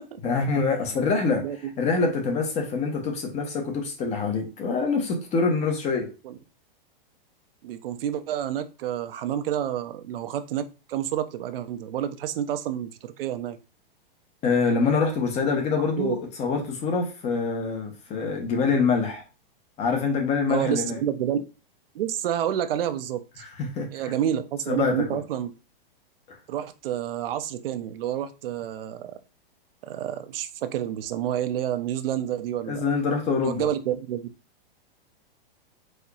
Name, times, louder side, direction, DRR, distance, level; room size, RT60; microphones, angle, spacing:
voice 1, 0.2-1.4 1.8-6.1 14.4-19.2 19.8-21.0 23.4-23.9 24.7-25.2 26.3-26.4 32.7-33.7, left 4 dB, 25° left, 3 dB, 0.8 m, -25 dB
voice 2, 7.6-13.6 15.4-15.5 16.0-16.2 20.5-21.5 21.9-23.2 23.9-25.5 26.5-29.1 29.8-32.8 33.4-34.3, right 10 dB, 70° right, 10 dB, 0.6 m, -29 dB
4.3 x 2.8 x 2.3 m, 0.31 s
hypercardioid pair, 140°, 30 cm